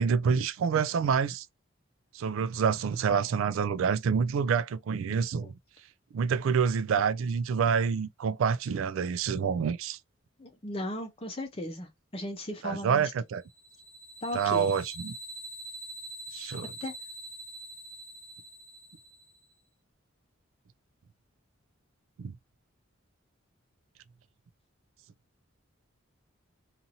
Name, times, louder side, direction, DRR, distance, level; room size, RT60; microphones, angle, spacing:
voice 1, 0.0-1.5 2.1-5.5 6.1-10.0 12.6-13.4 14.3-15.1 16.3-16.7 22.2-22.3, right 6 dB, 80° right, 0.3 m, -27 dB
voice 2, 10.4-13.1 14.2-14.7 16.8-16.9, left 1 dB, 25° left, 0.6 m, -36 dB
sound 1, 13.5-19.4, right 1 dB, 45° right, 0.9 m, -44 dB
2.7 x 2.5 x 2.7 m
head